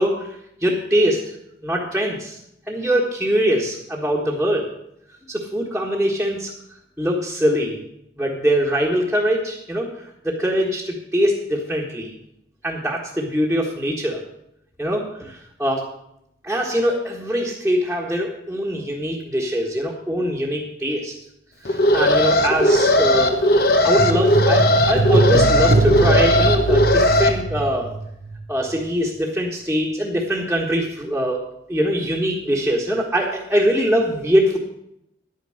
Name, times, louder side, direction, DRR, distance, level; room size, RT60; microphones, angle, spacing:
voice 1, 0.0-1.3 1.6-2.4 2.7-4.7 5.3-6.5 7.0-7.8 8.2-12.1 12.6-14.2 14.8-15.9 16.4-21.1 21.6-23.4 23.8-27.9 28.5-31.4 31.7-34.6, equal, 5° right, -4 dB, 1.5 m, -22 dB
Alarm, 21.7-27.3, left 1 dB, 55° left, 1.2 m, -17 dB
sound 1, 24.0-28.4 28.7-28.8, right 3 dB, 55° right, 0.6 m, -21 dB
11.0 x 9.3 x 6.4 m, 0.78 s
head